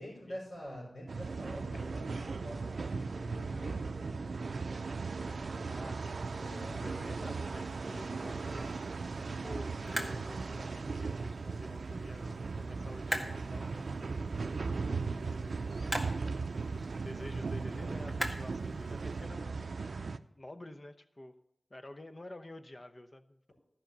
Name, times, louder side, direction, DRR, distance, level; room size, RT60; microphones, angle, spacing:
voice 1, 0.0-4.3 6.4-6.9, equal, 80° left, -4 dB, 4.5 m, -47 dB
sound 1, 1.1-20.2, right 4 dB, 85° right, 0.4 m, -37 dB
voice 2, 5.6-9.1 9.4-14.0 14.7-16.0 16.7-19.7 20.4-21.4 21.7-23.5, left 1 dB, 35° left, 8 dB, 0.8 m, -49 dB
sound 2, 6.0-19.3, equal, ahead, 1.8 m, -45 dB
13.0 x 5.8 x 6.7 m, 0.79 s
wide cardioid pair, 70°, 0 cm